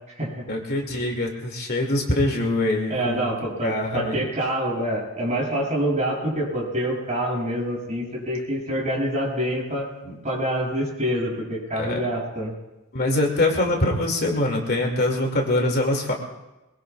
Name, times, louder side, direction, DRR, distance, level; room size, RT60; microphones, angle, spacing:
voice 1, 0.5-3.3 3.6-4.2 10.0-10.2 11.7-12.0 12.9-16.1, left 1 dB, 50° left, 1 dB, 2.5 m, -24 dB
voice 2, 2.9-9.9 10.2-12.5, right 1 dB, 35° right, -5 dB, 7.9 m, -26 dB
23.0 x 23.0 x 2.5 m, 1.0 s
head